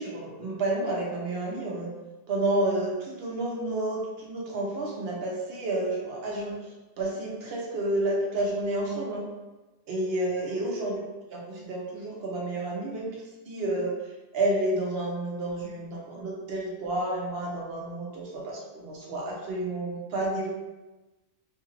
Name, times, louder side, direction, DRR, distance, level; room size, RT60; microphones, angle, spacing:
voice 1, 0.0-1.9 2.3-6.5 7.0-9.2 9.9-11.0 11.3-13.1 13.5-13.9 14.3-20.5, right 1 dB, 60° right, -3 dB, 0.9 m, -30 dB
2.7 x 2.3 x 3.1 m, 1.1 s
omnidirectional pair, 1.2 m